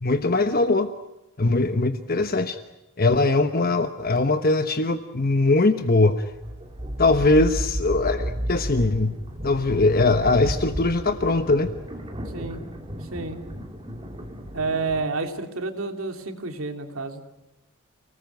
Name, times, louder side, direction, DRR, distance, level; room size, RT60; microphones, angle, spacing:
voice 1, 0.0-0.9 1.4-2.6 3.0-6.3 7.0-9.2 9.4-11.7, left 2 dB, 45° left, 8 dB, 1.1 m, -21 dB
sound 1, 6.3-15.1, equal, 25° right, 3.0 m, -33 dB
voice 2, 14.5-17.2, right 3 dB, 70° right, 5 dB, 2.9 m, -29 dB
29.5 x 19.5 x 9.3 m, 0.99 s
head